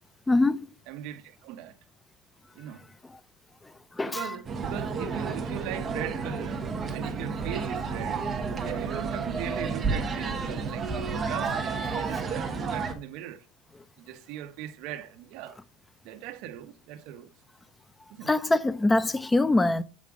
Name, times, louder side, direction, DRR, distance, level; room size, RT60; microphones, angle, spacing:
voice 1, 0.3-0.7 3.0-3.2 3.6-4.4 18.2-19.8, left 2 dB, 10° left, 0.4 m, -24 dB
voice 2, 0.9-1.8 2.6-2.9 4.0-8.2 8.6-13.5 14.0-15.6 16.0-17.3 18.1-18.3, right 11 dB, 60° right, 0.8 m, -39 dB
sound 1, 4.5-12.9, right 4 dB, 20° right, 1.1 m, -31 dB
7.4 x 4.9 x 3.6 m
cardioid pair, 155°, 0 cm